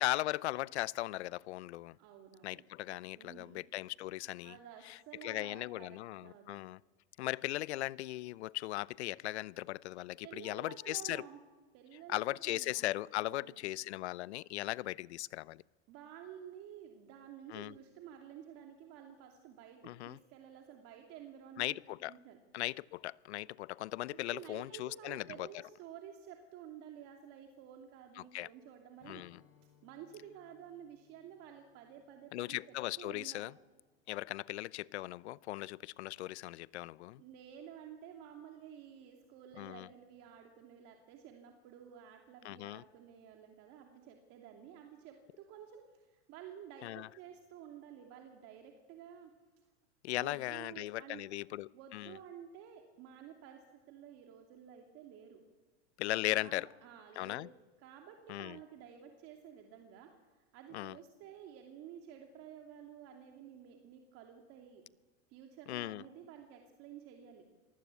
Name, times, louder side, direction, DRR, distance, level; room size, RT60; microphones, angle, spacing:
voice 1, 0.0-2.0 2.4-4.6 4.8-6.8 7.2-11.2 12.1-15.6 17.5-17.7 19.8-20.2 21.6-22.1 22.5-25.5 28.2-28.5 29.1-29.4 32.3-33.5 34.1-37.2 39.6-39.9 42.4-42.8 46.8-47.1 50.0-52.2 56.0-56.7 57.2-57.5 58.3-58.6 60.7-61.0 65.7-66.0, left 17 dB, 75° left, 0.7 m, -38 dB
voice 2, 2.0-2.7 3.1-3.6 4.4-6.6 10.2-11.4 11.7-12.9 13.2-13.6 15.9-22.4 24.1-29.2 29.8-33.5 37.2-49.3 50.1-51.2 51.7-55.4 56.3-64.8 65.3-67.4, right 9 dB, 45° right, 2.8 m, -52 dB
Strum, 29.0-34.4, left 9 dB, 60° left, 7.9 m, -69 dB
26.5 x 19.5 x 8.3 m
supercardioid pair, 140°, 33 cm